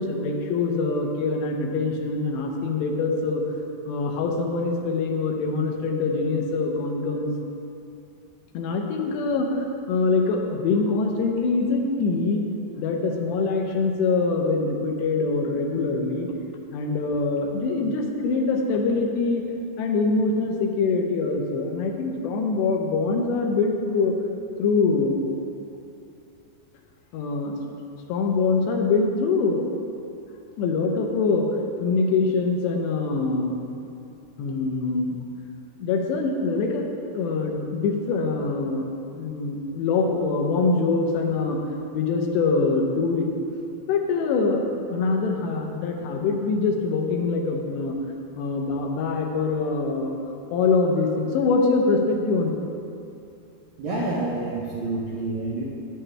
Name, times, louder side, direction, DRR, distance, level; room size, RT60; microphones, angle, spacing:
voice 1, 0.0-3.4 3.9-7.3 8.5-12.5 12.8-16.3 16.7-19.4 19.8-24.2 24.6-25.2 27.1-27.6 28.1-29.6 30.6-33.6 34.4-35.2 35.8-36.9 37.1-41.6 41.9-43.3 43.9-48.0 48.4-50.1 50.5-52.5, left 3 dB, 85° left, 2 dB, 3.0 m, -24 dB
voice 2, 53.8-55.6, right 2 dB, 70° right, -6 dB, 1.9 m, -28 dB
10.5 x 10.0 x 3.3 m, 2.6 s
omnidirectional pair, 4.8 m